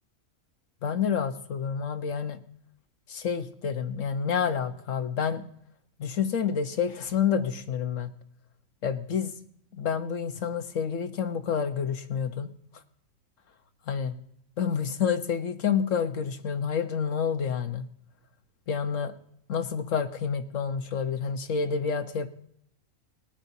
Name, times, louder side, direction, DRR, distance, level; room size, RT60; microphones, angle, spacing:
voice 1, 0.8-2.4 3.1-5.4 6.0-8.1 8.8-9.3 9.7-12.5 13.9-14.1 14.6-17.9 18.7-19.1 19.5-22.3, left 7 dB, 70° left, 8 dB, 1.3 m, -28 dB
20.5 x 10.0 x 2.7 m, 0.69 s
omnidirectional pair, 1.4 m